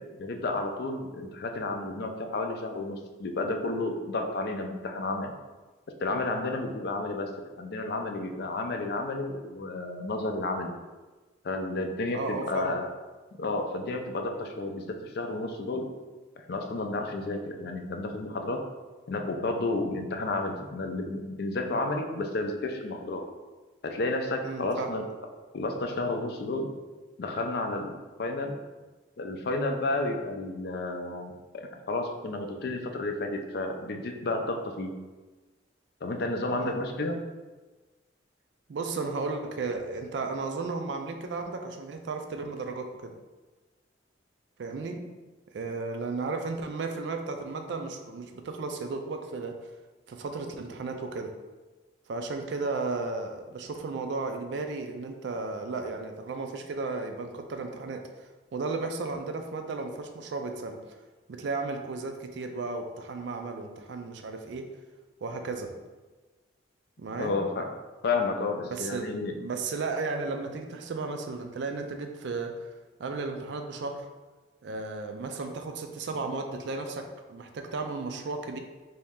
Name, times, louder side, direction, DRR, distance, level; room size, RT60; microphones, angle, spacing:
voice 1, 0.0-5.3 6.0-10.7 11.4-12.9 13.4-15.9 16.5-18.6 19.1-23.2 23.8-25.1 25.5-26.7 27.2-27.9 28.2-28.7 29.2-34.9 36.0-37.2 67.2-67.7 68.0-69.5, left 2 dB, 55° left, 4 dB, 0.4 m, -31 dB
voice 2, 12.1-12.7 24.4-24.9 36.5-36.9 38.7-43.1 44.6-45.0 45.5-49.5 50.1-51.3 52.1-60.8 61.3-64.6 65.2-65.7 67.0-67.4 68.7-72.7 73.0-74.0 74.6-78.6, right 3 dB, 65° right, 5 dB, 0.4 m, -34 dB
3.0 x 2.8 x 3.5 m, 1.2 s
head